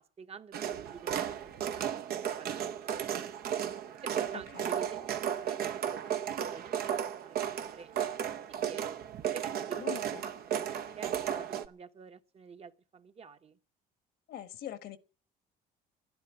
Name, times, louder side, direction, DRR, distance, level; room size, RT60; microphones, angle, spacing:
voice 1, 0.0-1.4 1.7-3.1 4.0-6.7 7.2-8.2 8.7-9.0 9.3-13.6, right 5 dB, 35° right, 1.2 m, -49 dB
sound 1, 0.5-11.7, right 9 dB, 65° right, 0.9 m, -34 dB
voice 2, 9.8-10.2 14.3-15.0, left 11 dB, 70° left, 1.3 m, -42 dB
11.5 x 10.5 x 8.4 m
cardioid pair, 110°, 17 cm